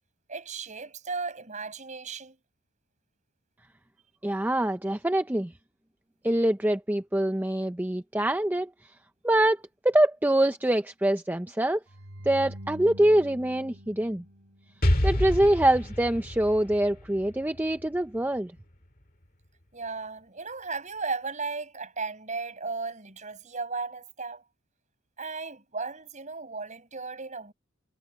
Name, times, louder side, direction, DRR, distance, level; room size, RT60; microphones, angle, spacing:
voice 1, 0.3-2.4 19.7-24.4 25.2-27.5, right 4 dB, 35° right, 5.7 m, -35 dB
voice 2, 4.2-5.5 6.2-8.9 9.2-11.8 12.2-14.2 15.0-18.5, right 1 dB, 10° right, 0.5 m, -24 dB
sound 1, 11.9-15.1, equal, 80° right, 3.0 m, -45 dB
Explosion, 14.8-18.6, left 1 dB, 40° left, 2.0 m, -29 dB
head